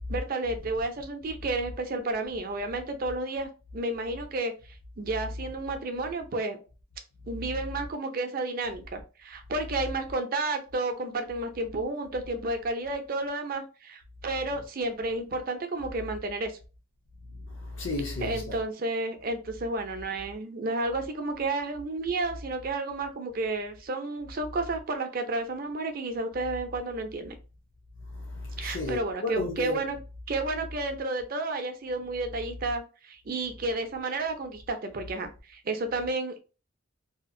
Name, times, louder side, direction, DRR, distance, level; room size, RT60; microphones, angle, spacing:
voice 1, 0.1-4.5 5.0-6.6 7.3-16.6 18.2-27.3 28.6-30.0 30.3-36.4, right 2 dB, 45° right, 0.5 m, -31 dB
voice 2, 17.2-18.6 28.0-29.8, left 2 dB, 70° left, 0.7 m, -34 dB
2.8 x 2.4 x 2.5 m
head